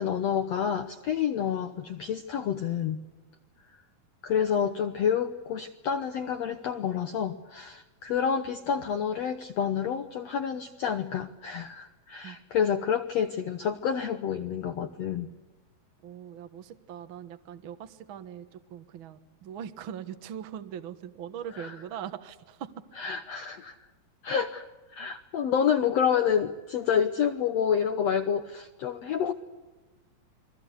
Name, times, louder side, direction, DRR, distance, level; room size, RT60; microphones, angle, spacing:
voice 1, 0.0-3.0 4.2-15.3 21.6-21.7 23.0-23.8 24.2-29.3, left 8 dB, 75° left, 8 dB, 1.5 m, -28 dB
voice 2, 16.0-22.7 24.3-24.4 25.0-25.1, right 9 dB, 60° right, 9 dB, 1.3 m, -41 dB
29.5 x 22.5 x 8.2 m, 1.1 s
omnidirectional pair, 4.3 m